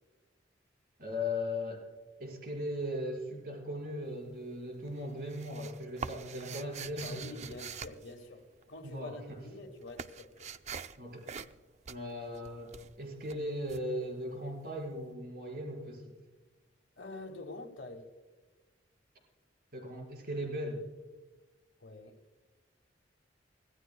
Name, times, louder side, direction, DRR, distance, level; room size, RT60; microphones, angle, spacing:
voice 1, 1.0-1.8 2.2-7.3 8.8-9.4 11.0-11.3 11.9-16.1 19.7-20.9, left 1 dB, 55° right, 1 dB, 4.9 m, -38 dB
sound 1, 4.0-4.6 4.9-8.9 9.2-14.8, right 6 dB, 40° right, 0.5 m, -45 dB
voice 2, 7.0-10.5 17.0-18.1 21.8-22.2, left 2 dB, 75° left, 0 dB, 1.8 m, -46 dB
25.0 x 16.0 x 2.3 m, 1.3 s
head